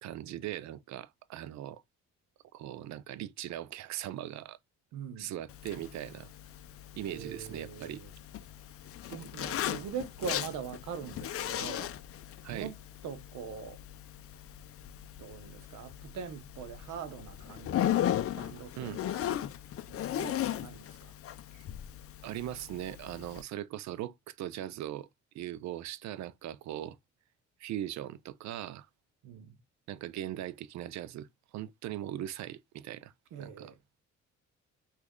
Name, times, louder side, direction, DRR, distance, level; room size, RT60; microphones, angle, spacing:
voice 1, 0.0-1.8 2.5-4.6 5.2-6.3 6.9-8.0 12.4-12.7 18.7-19.0 21.5-21.6 22.2-25.1 25.3-27.0 27.6-28.9 29.9-31.3 31.5-33.1 33.4-33.7, right 12 dB, 65° right, 0.4 m, -39 dB
voice 2, 4.9-5.3 7.1-8.1 9.1-12.0 12.5-12.7 13.0-13.8 15.2-19.4 19.9-21.1 29.2-29.6 33.3-33.8, right 7 dB, 85° right, 0.8 m, -43 dB
Zipper (clothing), 5.5-23.4, left 11 dB, 50° left, 0.5 m, -37 dB
3.1 x 2.4 x 3.6 m
cardioid pair, 90°, 30 cm